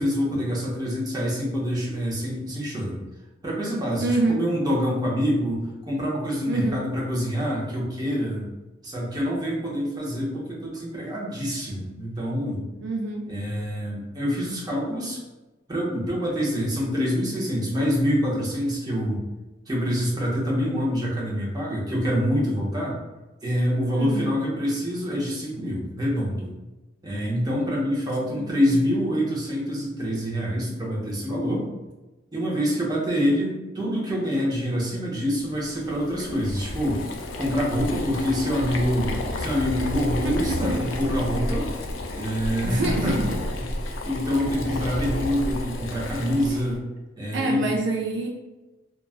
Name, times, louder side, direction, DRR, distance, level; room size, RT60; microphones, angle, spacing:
voice 1, 0.0-3.0 3.4-8.5 8.8-12.6 13.3-15.2 15.7-19.2 19.7-23.0 23.4-26.5 27.0-31.7 32.3-37.0 37.4-41.7 42.1-43.1 43.8-46.8 47.2-47.7, equal, 20° right, -4 dB, 0.7 m, -26 dB
voice 2, 4.0-4.4 6.5-6.8 12.8-13.2 24.0-24.3 28.3-28.9 40.2-40.8 42.6-43.2 44.2-44.8 46.5-46.6 47.3-48.3, right 2 dB, 65° right, 0 dB, 0.4 m, -27 dB
Boiling, 35.5-46.8, left 1 dB, 85° left, 0.4 m, -31 dB
3.0 x 2.2 x 2.4 m, 1.1 s
head